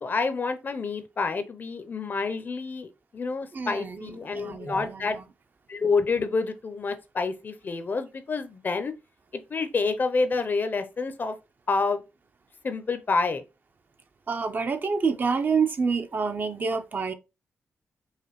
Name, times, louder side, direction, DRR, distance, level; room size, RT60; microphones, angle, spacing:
voice 1, 0.0-5.2 5.7-8.9 9.3-11.4 11.7-12.0 12.6-13.4, left 4 dB, 40° left, 0.6 m, -28 dB
voice 2, 3.5-5.2 14.3-17.1, right 5 dB, 40° right, 0.5 m, -28 dB
4.8 x 2.5 x 3.0 m
cardioid pair, 105°, 5 cm